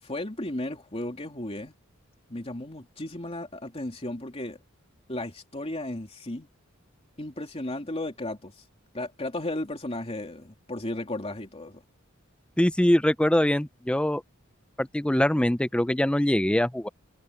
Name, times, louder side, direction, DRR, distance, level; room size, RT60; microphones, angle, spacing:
voice 1, 0.0-1.7 2.3-4.6 5.1-6.5 7.2-8.6 8.9-11.8, left 1 dB, 30° left, 2.9 m, -34 dB
voice 2, 12.6-14.2 14.8-16.9, left 1 dB, 5° left, 0.4 m, -23 dB
head